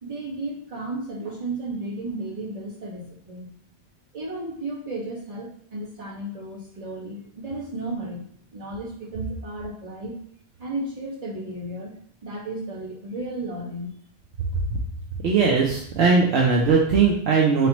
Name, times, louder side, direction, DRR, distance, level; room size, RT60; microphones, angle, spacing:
voice 1, 0.0-3.5 4.1-8.2 8.5-10.1 10.6-11.9 12.2-13.9, right 2 dB, 35° right, -7 dB, 1.5 m, -33 dB
voice 2, 15.2-17.7, right 5 dB, 70° right, -2 dB, 0.9 m, -19 dB
4.1 x 3.2 x 2.9 m, 0.63 s
omnidirectional pair, 1.1 m